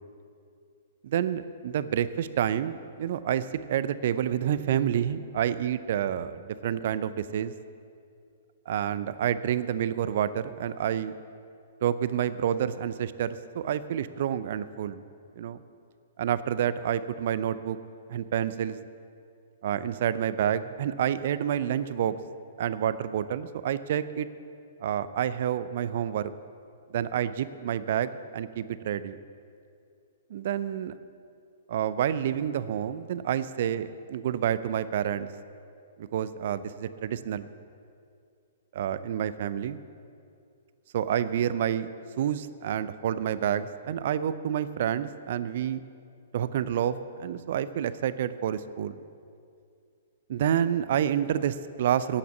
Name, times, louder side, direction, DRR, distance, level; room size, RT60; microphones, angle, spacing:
voice 1, 1.0-7.5 8.7-11.2 11.8-15.0 15.4-15.6 16.2-17.8 18.1-18.8 19.6-22.1 22.6-24.3 24.8-26.3 26.9-29.2 30.3-30.9 31.7-35.3 36.0-37.5 38.7-39.8 40.9-41.9 42.2-45.8 46.3-49.0 50.3-52.2, right 10 dB, 55° right, 15 dB, 0.5 m, -28 dB
9.9 x 8.6 x 8.2 m, 2.4 s
figure-of-eight pair, 115°, 0 cm